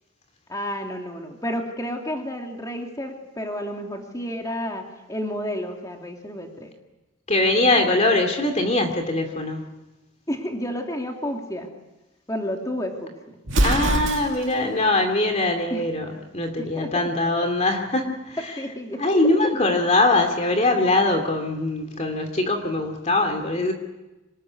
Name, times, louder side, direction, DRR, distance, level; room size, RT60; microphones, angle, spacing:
voice 1, 0.5-6.7 10.3-11.7 12.3-13.4 15.7-15.9 16.6-17.1 18.4-19.6, equal, 15° left, 2 dB, 2.7 m, -31 dB
voice 2, 7.3-9.7 13.6-18.2 19.0-23.7, left 2 dB, 30° left, 5 dB, 2.6 m, -22 dB
Explosion, 13.4-14.6, right 1 dB, 65° right, 2.4 m, -23 dB
26.5 x 20.5 x 9.7 m, 1.1 s
head